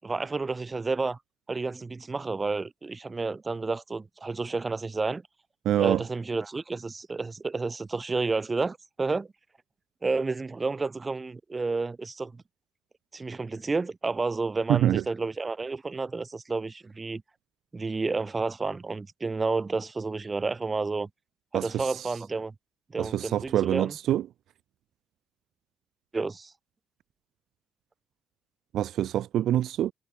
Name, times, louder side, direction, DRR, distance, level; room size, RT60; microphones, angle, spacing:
voice 1, 0.0-1.2 1.5-5.2 5.8-9.3 10.0-12.4 13.1-17.2 17.7-21.1 21.5-22.5 22.9-24.0 26.1-26.5, right 3 dB, 20° right, 5.9 m, -30 dB
voice 2, 5.6-6.0 14.7-15.0 21.5-21.8 23.0-24.2 28.7-29.9, right 12 dB, 70° right, 2.8 m, -25 dB
cardioid pair, 120°, 0 cm